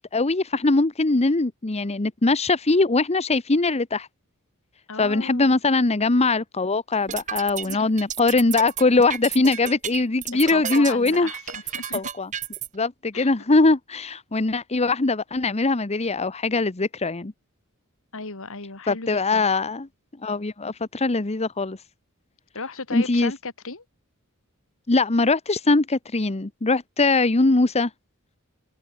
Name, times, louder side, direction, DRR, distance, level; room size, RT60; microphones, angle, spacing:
voice 1, 0.0-4.1 5.0-11.3 11.9-12.3 12.7-17.3 18.9-19.9 20.2-21.8 22.9-23.3 24.9-27.9, left 3 dB, 30° left, 1.0 m, -21 dB
voice 2, 4.9-5.6 7.7-7.9 10.3-12.0 13.1-13.3 18.1-19.5 22.5-23.8, left 3 dB, 65° left, 3.0 m, -36 dB
sound 1, 6.9-12.7, right 9 dB, 35° right, 1.0 m, -32 dB
head